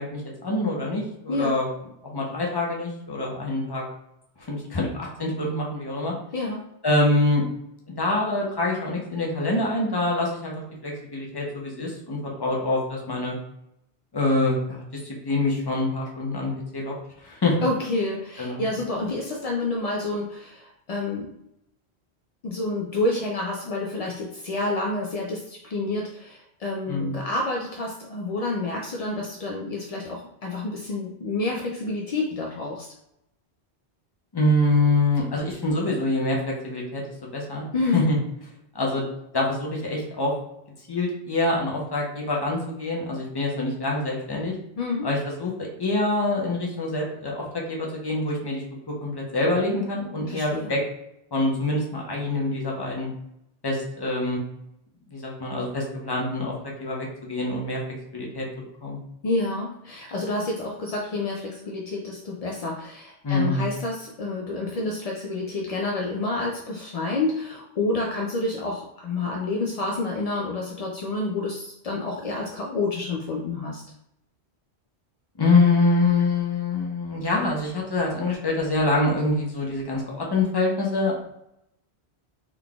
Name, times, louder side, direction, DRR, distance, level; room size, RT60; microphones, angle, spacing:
voice 1, 0.0-1.7 2.1-3.8 4.4-6.1 6.8-7.4 8.0-10.5 10.8-13.4 14.1-14.8 15.2-16.9 17.2-17.6 18.4-18.7 26.9-27.2 34.3-37.6 37.9-38.2 38.7-39.1 39.3-40.3 40.9-44.5 45.0-48.6 49.0-50.8 51.3-53.1 53.6-54.4 55.1-56.5 56.8-57.8 58.1-58.5 58.8-59.0 63.2-63.7 75.4-81.3, left 2 dB, 25° left, -2 dB, 0.7 m, -25 dB
voice 2, 1.3-1.6 6.3-6.6 17.6-21.3 22.4-32.9 37.7-38.1 44.8-45.1 50.3-50.7 59.2-73.8, left 2 dB, 60° left, -1 dB, 0.4 m, -29 dB
3.8 x 3.4 x 2.3 m, 0.78 s
omnidirectional pair, 1.1 m